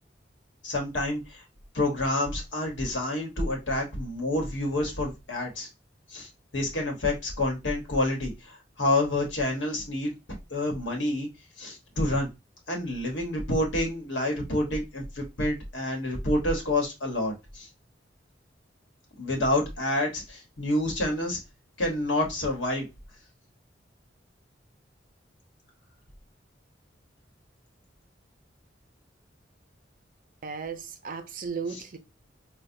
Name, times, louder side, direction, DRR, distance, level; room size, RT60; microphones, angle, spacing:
voice 1, 0.6-1.4 1.7-5.7 6.1-11.3 11.6-12.3 12.7-17.7 19.2-21.4 21.8-22.9 31.7-31.8, left 1 dB, 90° left, 1.1 m, -28 dB
voice 2, 30.4-32.0, right 5 dB, 50° right, 0.5 m, -35 dB
4.4 x 2.2 x 2.6 m
head